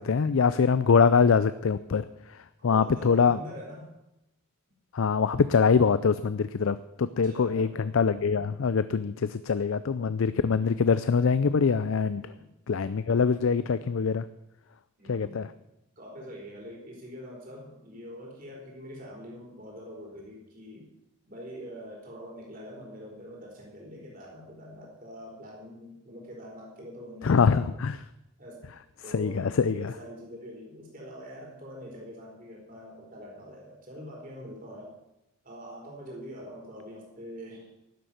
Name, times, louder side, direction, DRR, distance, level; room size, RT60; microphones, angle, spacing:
voice 1, 0.0-2.1 2.6-3.4 4.9-12.2 12.7-14.3 15.1-15.5 27.2-28.0 29.1-29.9, left 5 dB, 70° left, 14 dB, 0.4 m, -24 dB
voice 2, 2.7-3.9 7.2-7.8 12.1-12.5 15.0-15.5 16.0-20.9 21.2-27.8 28.4-28.7 29.0-35.0 35.4-37.7, equal, 40° right, -2 dB, 4.4 m, -44 dB
12.0 x 7.9 x 9.2 m, 0.88 s
head